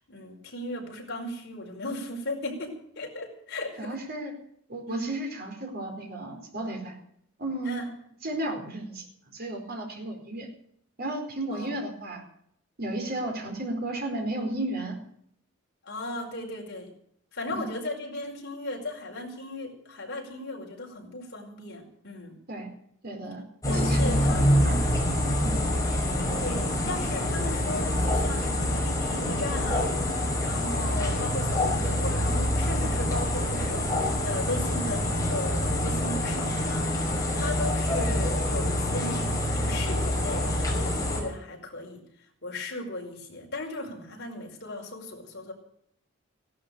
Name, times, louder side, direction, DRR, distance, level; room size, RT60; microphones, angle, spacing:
voice 1, 0.1-4.0 4.9-5.1 7.6-7.9 11.5-11.8 15.8-16.9 17.3-22.4 23.7-24.9 26.4-34.0 34.2-36.9 37.3-42.0 42.4-45.5, left 2 dB, 55° left, 0 dB, 5.2 m, -36 dB
voice 2, 3.8-4.3 4.7-7.0 7.4-7.8 8.2-10.5 11.0-12.2 12.8-15.0 17.6-17.7 22.5-22.7 23.0-24.8 25.4-25.6, right 1 dB, 50° right, 2 dB, 4.6 m, -33 dB
sound 1, 23.6-41.2, left 1 dB, 15° left, 5.5 m, -26 dB
16.5 x 12.5 x 6.8 m, 0.70 s
head